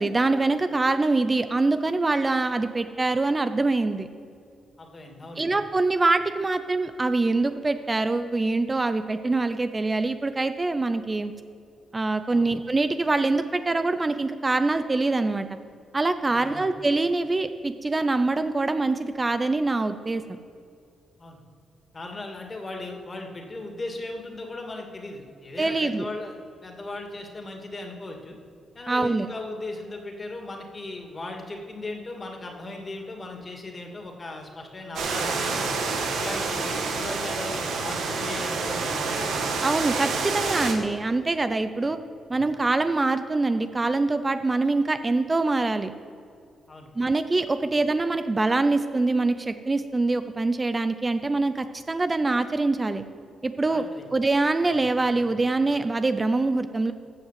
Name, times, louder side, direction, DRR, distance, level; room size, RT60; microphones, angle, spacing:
voice 1, 0.0-4.1 5.4-11.3 11.9-15.5 15.9-20.2 25.6-26.1 28.9-29.3 39.6-42.0 42.3-45.9 47.0-53.0 53.4-53.8 54.1-56.9, right 3 dB, 25° right, 10 dB, 0.6 m, -24 dB
voice 2, 4.8-5.5 12.3-12.4 16.3-16.7 21.2-21.4 21.9-26.3 26.6-28.4 28.7-35.7 36.2-39.2 46.7-46.9 53.7-54.1, left 2 dB, 35° left, 2 dB, 2.5 m, -37 dB
sound 1, 34.9-40.7, right 4 dB, 80° right, 1.9 m, -28 dB
15.0 x 5.5 x 7.6 m, 2.4 s
cardioid pair, 70°, 0 cm